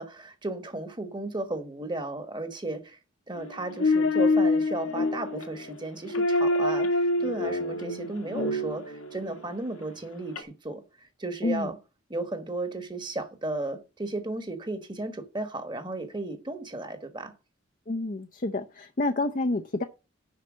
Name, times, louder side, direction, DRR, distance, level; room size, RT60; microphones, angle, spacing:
voice 1, 0.0-3.0 3.3-11.8 12.1-17.3, right 2 dB, 20° right, 1.3 m, -34 dB
sound 1, 3.4-9.3 10.4-10.5, left 2 dB, 90° left, 1.9 m, -26 dB
voice 2, 17.9-19.8, left 2 dB, 40° left, 0.6 m, -29 dB
7.5 x 5.7 x 7.3 m
head